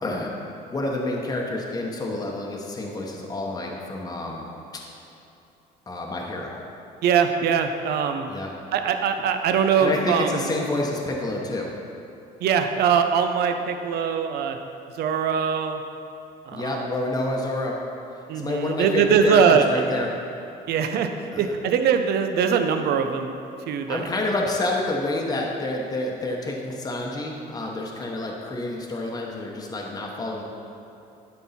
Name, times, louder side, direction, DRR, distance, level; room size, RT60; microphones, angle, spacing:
voice 1, 0.7-4.5 5.9-6.6 8.3-8.5 9.8-11.7 16.5-17.7 18.3-20.1 21.3-21.5 23.9-30.4, left 2 dB, 20° left, -1 dB, 0.9 m, -28 dB
voice 2, 7.0-8.3 8.7-10.5 12.4-14.6 15.0-15.8 16.5-16.9 18.3-19.7 20.7-21.1 21.4-23.3 23.7-24.0, right 7 dB, 70° right, 7 dB, 0.7 m, -22 dB
11.5 x 4.6 x 4.2 m, 2.9 s
cardioid pair, 110°, 17 cm